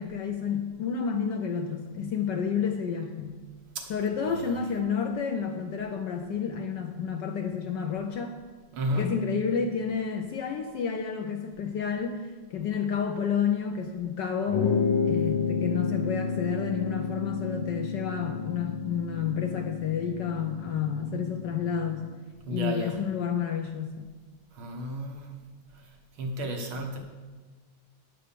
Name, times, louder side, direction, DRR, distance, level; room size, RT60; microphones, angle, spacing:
voice 1, 0.0-3.4 3.9-8.4 9.0-14.6 15.0-22.0 22.5-24.1, left 7 dB, 70° left, 4 dB, 1.1 m, -30 dB
voice 2, 4.2-4.5 8.7-9.2 22.5-23.0 24.5-25.4 26.2-27.0, equal, 70° right, 2 dB, 2.0 m, -32 dB
sound 1, 14.5-22.2, left 5 dB, 90° left, 2.1 m, -30 dB
9.7 x 5.6 x 6.8 m, 1.4 s
omnidirectional pair, 2.4 m